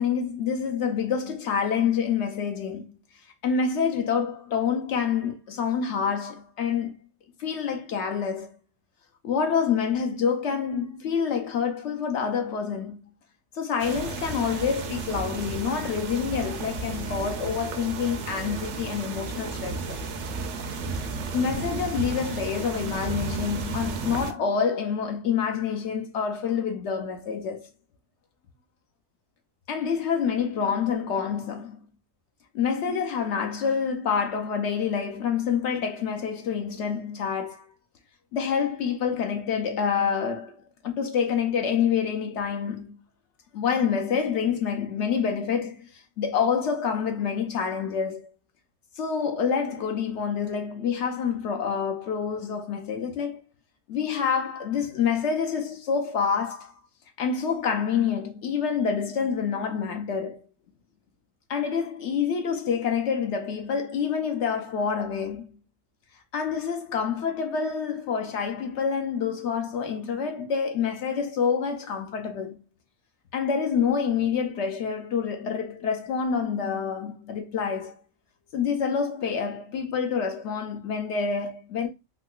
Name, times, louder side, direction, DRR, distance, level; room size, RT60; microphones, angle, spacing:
voice 1, 0.0-2.9 3.4-7.0 7.4-8.5 9.2-13.0 13.5-20.0 21.3-27.7 29.7-31.8 32.5-37.7 38.3-43.0 43.5-48.3 49.0-53.4 53.9-56.7 57.2-60.4 61.5-65.6 66.3-72.6 73.3-78.0 78.5-81.9, left 6 dB, 65° left, 0.8 m, -27 dB
sound 1, 13.8-24.3, right 4 dB, 65° right, 0.9 m, -33 dB
3.7 x 2.7 x 2.3 m
omnidirectional pair, 1.4 m